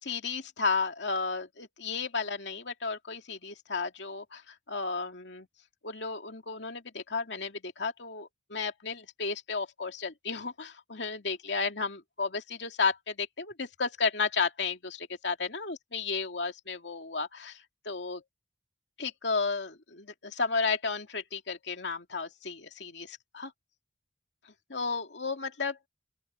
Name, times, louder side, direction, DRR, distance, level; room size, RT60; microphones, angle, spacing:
voice 1, 0.0-5.5 5.8-18.2 19.0-23.5 24.7-25.9, left 4 dB, 85° left, 2.5 m, -33 dB
open air
head